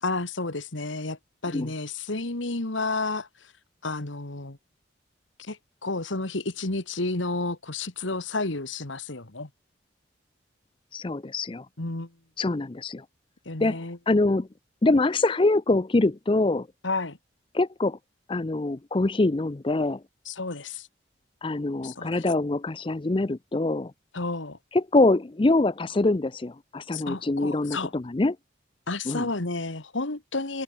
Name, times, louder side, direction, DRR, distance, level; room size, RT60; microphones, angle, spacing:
voice 1, 0.0-3.5 3.8-4.6 5.4-9.5 11.8-12.1 13.5-14.0 16.8-17.2 20.3-20.9 21.8-22.3 24.1-24.6 26.9-27.9 28.9-30.6, left 3 dB, 85° left, 2.1 m, -31 dB
voice 2, 10.9-11.7 12.4-13.0 13.6-13.8 14.1-14.5 14.8-16.7 17.5-18.0 18.3-20.0 21.4-23.9 24.7-28.4 29.1-29.3, left 2 dB, 25° left, 0.5 m, -24 dB
head